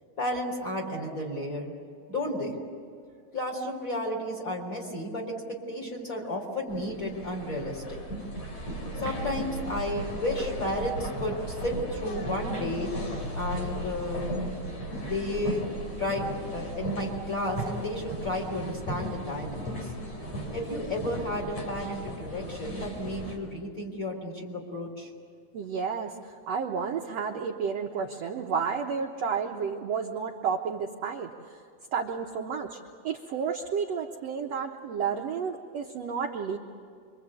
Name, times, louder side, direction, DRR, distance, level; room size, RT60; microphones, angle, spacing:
voice 1, 0.2-1.7 2.1-2.6 3.3-8.0 9.0-12.9 13.4-14.3 15.0-15.6 16.0-16.3 16.5-19.9 20.5-25.1, left 1 dB, 20° left, 0 dB, 3.9 m, -32 dB
sound 1, 6.7-23.4, equal, 40° left, 5.0 m, -36 dB
voice 2, 25.5-31.6 31.9-32.8 33.0-36.6, right 6 dB, 70° right, 1 dB, 1.6 m, -31 dB
27.0 x 24.0 x 8.4 m, 2.2 s
omnidirectional pair, 4.6 m